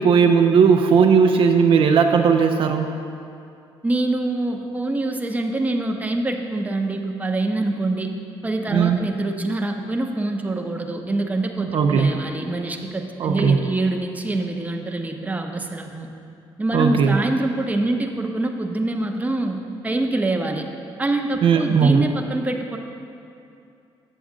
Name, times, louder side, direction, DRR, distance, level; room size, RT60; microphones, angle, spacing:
voice 1, 0.0-2.9 8.7-9.0 11.7-12.1 13.2-13.6 16.7-17.2 21.4-22.1, right 6 dB, 60° right, 4 dB, 0.4 m, -17 dB
voice 2, 3.8-8.1 8.4-16.1 16.6-20.6 21.0-22.8, right 2 dB, 15° right, 3 dB, 0.7 m, -25 dB
7.8 x 7.3 x 3.7 m, 2.6 s
cardioid pair, 75°, 10 cm